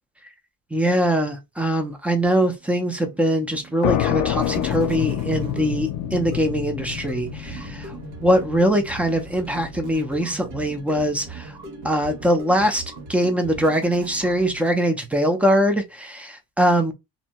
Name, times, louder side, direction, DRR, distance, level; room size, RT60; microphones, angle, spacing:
voice 1, 0.7-7.9 8.2-11.6 11.8-12.8 13.1-16.9, equal, 5° right, 0.4 m, -22 dB
sound 1, 2.5-15.1, right 4 dB, 85° right, 1.1 m, -40 dB
sound 2, 3.8-11.2, left 11 dB, 60° left, 0.5 m, -28 dB
2.6 x 2.2 x 2.8 m
cardioid pair, 150°, 40 cm